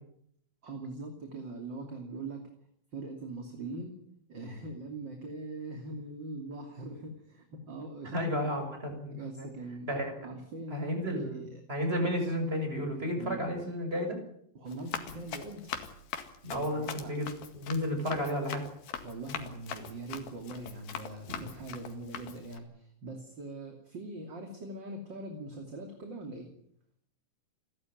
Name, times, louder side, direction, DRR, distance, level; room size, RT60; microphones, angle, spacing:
voice 1, 0.6-2.5 2.9-4.0 4.3-8.6 9.1-9.9 10.2-11.6 13.1-13.4 14.5-15.7 16.5-17.1 19.0-26.5, right 2 dB, 35° right, 4 dB, 3.1 m, -42 dB
voice 2, 8.1-9.5 9.9-10.1 10.7-14.2 16.4-17.3 17.5-18.6, equal, 15° right, 4 dB, 6.7 m, -32 dB
Run, 14.7-22.6, left 8 dB, 80° left, 3.8 m, -42 dB
29.5 x 13.0 x 9.4 m, 0.69 s
omnidirectional pair, 4.2 m